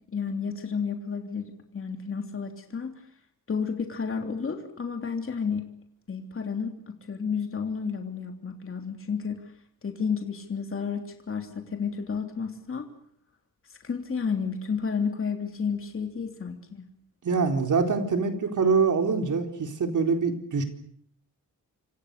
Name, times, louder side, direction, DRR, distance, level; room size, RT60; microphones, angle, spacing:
voice 1, 0.1-3.0 3.5-5.7 6.1-9.4 9.8-12.9 13.8-16.8, left 6 dB, 40° left, 4 dB, 3.2 m, -31 dB
voice 2, 17.2-20.6, right 5 dB, 65° right, 5 dB, 4.2 m, -24 dB
28.0 x 25.5 x 6.7 m, 0.63 s
wide cardioid pair, 145°, 33 cm